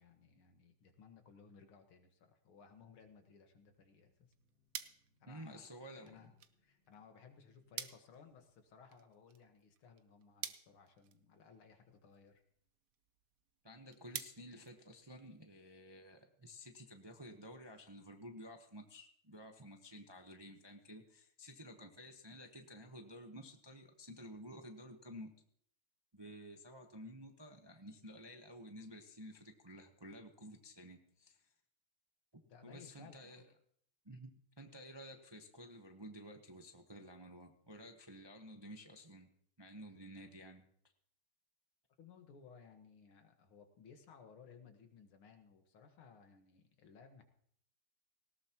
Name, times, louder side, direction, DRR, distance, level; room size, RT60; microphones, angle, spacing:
voice 1, 0.0-4.3 5.2-5.7 6.0-6.3 6.6-12.4 32.4-33.5 42.0-47.2, left 6 dB, 85° left, 5 dB, 2.4 m, -60 dB
sound 1, 2.7-8.6, left 1 dB, 45° right, 8.2 m, -79 dB
sound 2, 4.0-15.5, right 9 dB, 60° right, 0.9 m, -52 dB
voice 2, 5.3-6.2 13.6-25.3 26.1-31.4 32.3-33.5 34.0-34.3 34.6-39.3 39.6-40.6, equal, 25° right, 4 dB, 0.5 m, -53 dB
19.0 x 17.0 x 3.0 m, 0.65 s
omnidirectional pair, 2.3 m